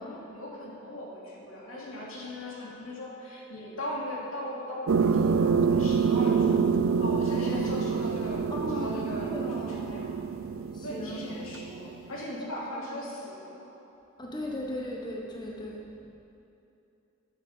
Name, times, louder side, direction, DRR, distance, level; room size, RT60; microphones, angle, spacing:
voice 1, 0.0-6.6 7.0-8.4 8.7-10.2 10.8-13.7, left 1 dB, 90° left, -4 dB, 2.7 m, -38 dB
sound 1, 4.9-12.1, right 5 dB, 80° right, 0.5 m, -26 dB
voice 2, 8.5-10.0 10.7-11.3 12.3-13.0 14.2-15.9, left 1 dB, 20° left, -2 dB, 1.1 m, -38 dB
10.5 x 7.5 x 7.2 m, 2.8 s
head